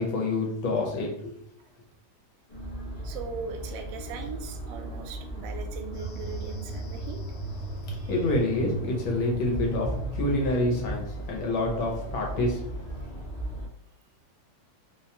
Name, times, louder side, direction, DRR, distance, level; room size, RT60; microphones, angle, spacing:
voice 1, 0.0-1.3 8.1-12.6, left 2 dB, 80° left, -1 dB, 1.7 m, -27 dB
sound 1, 2.5-13.7, right 1 dB, 45° left, 0.4 m, -37 dB
voice 2, 3.0-7.2 7.9-8.1, right 5 dB, 75° right, 4 dB, 1.1 m, -39 dB
sound 2, 5.9-11.0, equal, 60° left, 1.2 m, -36 dB
4.3 x 2.2 x 2.8 m, 0.72 s
omnidirectional pair, 2.2 m